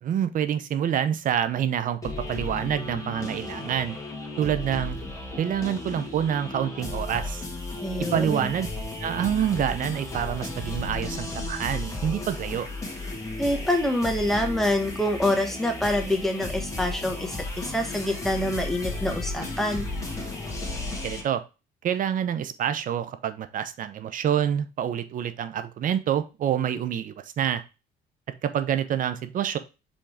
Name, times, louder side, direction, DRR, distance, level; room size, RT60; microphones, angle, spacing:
voice 1, 0.0-4.0 4.4-5.0 5.4-7.4 8.1-8.7 9.0-12.7 21.0-21.4 21.8-27.6 28.4-29.6, right 9 dB, 55° right, 11 dB, 0.8 m, -27 dB
sound 1, 2.0-21.2, left 2 dB, 20° left, 1.9 m, -34 dB
voice 2, 7.8-8.5 13.4-19.9, left 1 dB, ahead, 3 dB, 1.4 m, -26 dB
5.2 x 3.6 x 5.0 m, 0.29 s
cardioid pair, 110°, 17 cm